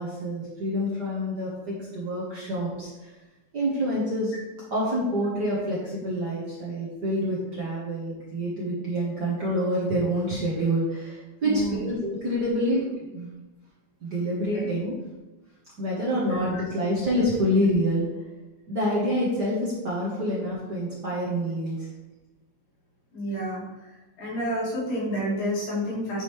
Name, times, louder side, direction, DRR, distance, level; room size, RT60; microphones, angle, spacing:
voice 1, 0.0-3.1 3.5-4.3 4.7-13.3 14.0-14.9 15.8-18.0 18.7-21.9, equal, 45° right, -6 dB, 1.4 m, -27 dB
voice 2, 11.4-11.8 14.5-14.7 16.1-16.6 23.1-23.6 24.2-26.2, equal, 85° left, -7 dB, 4.1 m, -30 dB
9.0 x 5.0 x 3.2 m, 1.1 s
omnidirectional pair, 3.4 m